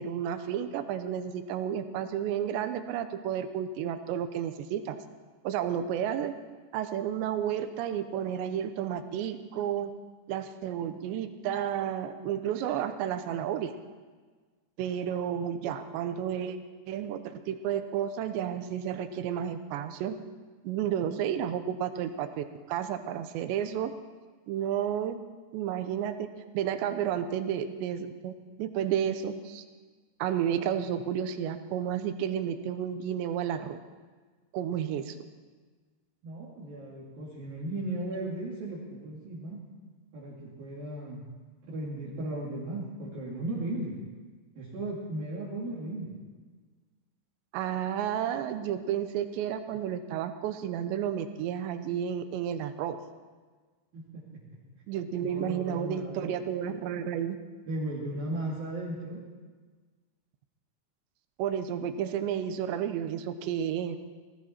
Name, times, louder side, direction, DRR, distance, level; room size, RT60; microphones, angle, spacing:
voice 1, 0.0-5.0 5.4-6.3 6.7-9.9 10.3-13.7 14.8-16.6 16.9-20.2 20.6-23.9 24.5-25.2 25.5-26.3 26.5-28.3 28.6-29.6 30.2-33.8 34.5-35.2 47.5-53.0 54.9-57.4 61.4-64.0, right 9 dB, 85° right, 9 dB, 3.0 m, -31 dB
voice 2, 36.2-39.6 40.1-41.2 41.7-44.0 44.6-46.2 53.9-54.2 55.2-56.3 57.7-59.2, right 1 dB, 55° right, -7 dB, 4.1 m, -36 dB
19.5 x 16.0 x 4.4 m, 1.4 s
omnidirectional pair, 5.2 m